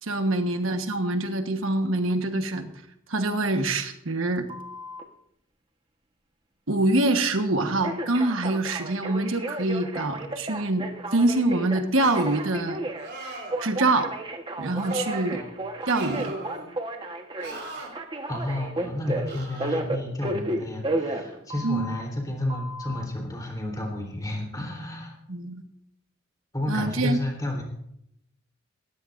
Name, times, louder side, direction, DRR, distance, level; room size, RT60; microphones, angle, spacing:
voice 1, 0.0-2.7 3.1-4.5 6.7-10.9 11.1-12.8 13.6-14.1 14.6-15.4 15.9-16.3 21.6-21.9 25.3-25.6 26.7-27.2, right 2 dB, 70° right, 6 dB, 1.3 m, -25 dB
Telephone, 4.5-5.0 7.8-22.0 22.5-23.0, right 1 dB, 25° right, 1.2 m, -33 dB
sound 1, 12.0-12.5 13.0-13.6 14.7-15.3 15.8-16.7 17.4-17.9 19.3-19.8, right 2 dB, 50° right, 3.9 m, -38 dB
voice 2, 18.3-25.2 26.5-27.6, left 1 dB, 20° left, 1 dB, 3.5 m, -31 dB
19.5 x 14.5 x 2.6 m, 0.74 s
head